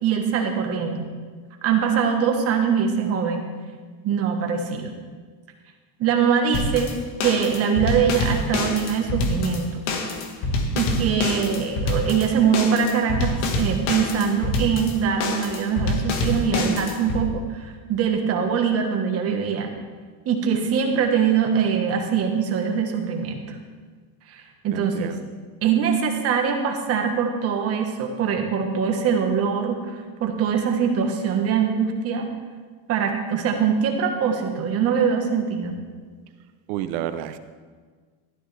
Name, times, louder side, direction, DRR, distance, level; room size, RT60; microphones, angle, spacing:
voice 1, 0.0-1.1 1.6-3.4 4.0-4.9 6.0-6.9 7.2-9.8 10.7-19.7 20.2-23.5 24.3-25.1 25.6-32.3 32.9-35.8, right 7 dB, 35° right, 3 dB, 1.4 m, -23 dB
sound 1, 6.5-17.2, left 2 dB, 65° left, 1.8 m, -26 dB
voice 2, 24.7-25.3 36.7-37.4, right 11 dB, 80° right, 10 dB, 0.9 m, -30 dB
14.5 x 12.5 x 3.4 m, 1.5 s
cardioid pair, 175°, 42 cm